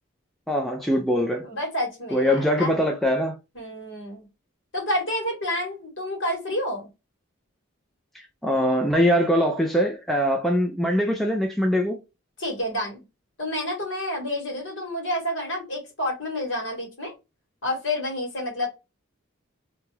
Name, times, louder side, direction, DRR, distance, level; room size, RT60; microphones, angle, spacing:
voice 1, 0.5-1.5 2.1-3.4 8.4-12.0, equal, ahead, 0.3 m, -22 dB
voice 2, 1.4-2.8 3.5-4.2 4.7-6.9 12.4-13.0 13.4-17.1 17.6-18.7, left 1 dB, 60° left, 1.6 m, -29 dB
2.8 x 2.3 x 3.0 m
head